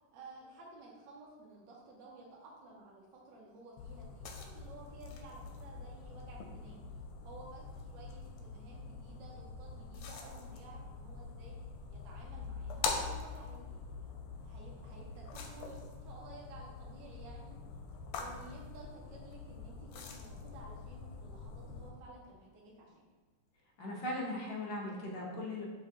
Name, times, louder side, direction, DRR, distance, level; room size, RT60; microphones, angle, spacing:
voice 1, 0.1-6.8 7.2-11.6 11.9-17.6 18.1-23.1, right 2 dB, 65° right, -3 dB, 1.3 m, -54 dB
sound 1, 3.8-21.9, left 4 dB, 90° left, 1.5 m, -44 dB
voice 2, 23.8-25.6, left 1 dB, 60° left, -3 dB, 1.4 m, -38 dB
5.7 x 2.9 x 2.9 m, 1.4 s
omnidirectional pair, 2.4 m